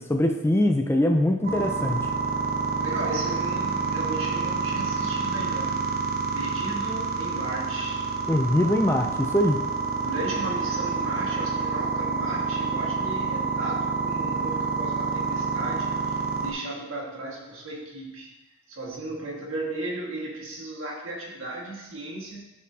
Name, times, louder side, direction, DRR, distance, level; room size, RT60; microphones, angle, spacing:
voice 1, 0.0-2.1 8.3-9.6, left 1 dB, 10° left, 4 dB, 0.4 m, -22 dB
sound 1, 1.4-16.5, right 4 dB, 45° right, 0.8 m, -28 dB
voice 2, 2.8-6.0 6.3-8.1 10.0-18.3 18.7-22.5, right 2 dB, 75° right, -3 dB, 1.7 m, -35 dB
11.5 x 4.3 x 2.8 m, 0.99 s
head